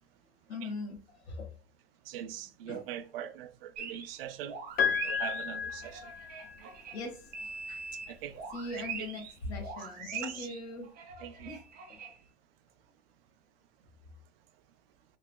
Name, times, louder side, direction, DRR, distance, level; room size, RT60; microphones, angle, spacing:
voice 1, 0.5-1.5 2.7-2.8 6.4-6.5 6.9-7.8 8.5-10.9 11.4-11.6 11.9-12.0, left 2 dB, 85° left, 1.2 m, -40 dB
voice 2, 2.1-4.5 5.0-6.1 6.6-6.7 8.1-8.3 10.0-10.5 11.2-11.5, right 10 dB, 65° right, 0.4 m, -42 dB
sound 1, 3.8-4.2 4.5-9.3 9.6-12.2, right 6 dB, 30° right, 0.7 m, -43 dB
Piano, 4.8-6.8 8.1-8.2, left 7 dB, 30° left, 0.5 m, -32 dB
3.1 x 2.7 x 2.2 m
hypercardioid pair, 110°, 31 cm